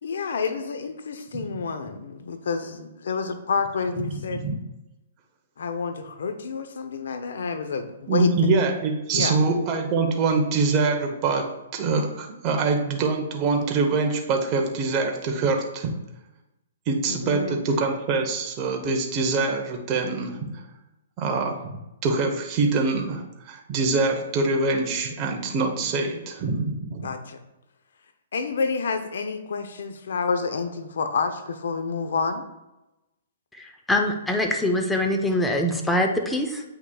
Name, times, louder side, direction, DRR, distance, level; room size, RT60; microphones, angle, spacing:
voice 1, 0.0-4.4 5.6-8.3 9.1-9.4 17.1-17.5 27.0-27.4 28.3-32.4, left 5 dB, 75° left, 8 dB, 0.7 m, -29 dB
voice 2, 8.1-15.9 16.9-20.5 21.2-27.1, right 3 dB, 30° right, 2 dB, 0.9 m, -24 dB
voice 3, 33.6-36.6, left 1 dB, 5° left, 3 dB, 0.6 m, -24 dB
8.2 x 5.7 x 2.3 m, 0.96 s
hypercardioid pair, 150°, 0 cm